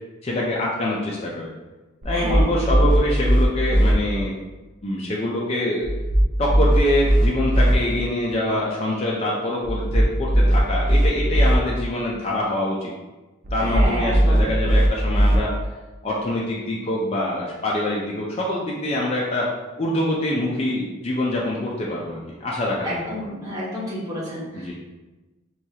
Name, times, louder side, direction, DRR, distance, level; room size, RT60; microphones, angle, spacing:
voice 1, 0.2-1.5 2.0-4.3 4.8-5.9 6.4-12.9 13.5-15.5 16.0-19.5 19.8-23.0 24.6-24.7, left 1 dB, 30° left, -4 dB, 0.4 m, -25 dB
sound 1, 2.0-3.9 5.8-7.8 9.6-11.6 13.4-15.4, equal, 40° right, 0.5 m, -19 dB
voice 2, 2.1-2.5 13.6-14.5 22.8-24.7, equal, 15° right, -8 dB, 1.1 m, -29 dB
4.5 x 2.3 x 2.7 m, 1.1 s
head